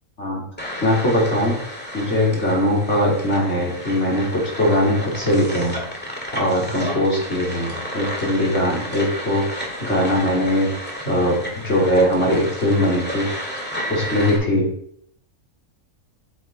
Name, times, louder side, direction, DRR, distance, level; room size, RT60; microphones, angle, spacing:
sound 1, 0.6-14.4, equal, 5° left, 1.9 m, -32 dB
voice 1, 0.8-1.5 1.9-5.7 6.3-10.7 11.0-13.3 13.9-14.7, equal, 50° left, -4 dB, 3.3 m, -20 dB
8.0 x 6.6 x 4.3 m, 0.67 s
omnidirectional pair, 1.6 m